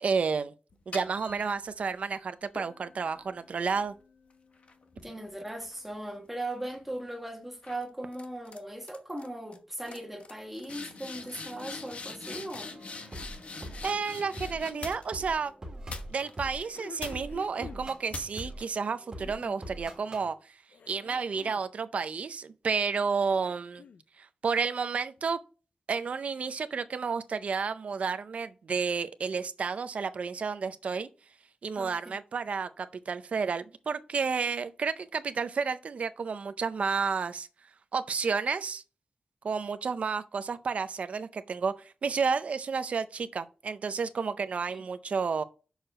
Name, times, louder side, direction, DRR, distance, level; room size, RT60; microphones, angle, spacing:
voice 1, 0.0-0.5 0.9-3.9 13.8-15.5 16.1-20.6 20.9-23.8 24.2-25.4 25.9-31.1 31.6-37.5 37.9-38.8 39.4-45.4, right 5 dB, 55° right, 0.5 m, -31 dB
sound 1, 0.7-1.9 2.6-6.1 6.5-6.9 7.6-7.8 8.1-8.6 8.8-9.3 9.5-9.6 9.9-15.3 15.9-16.5 17.0-17.5 18.1-18.6, left 3 dB, 55° left, 1.1 m, -44 dB
voice 2, 5.0-12.8 31.8-32.1 44.7-44.8, right 1 dB, 5° right, 1.4 m, -39 dB
sound 2, 12.7-20.3, equal, 25° right, 1.8 m, -44 dB
sound 3, 14.2-15.0 16.4-17.9 18.9-19.7 20.7-21.7 23.1-24.0 25.2-25.3, left 6 dB, 75° left, 0.5 m, -49 dB
6.5 x 4.7 x 6.2 m
wide cardioid pair, 165°, 3 cm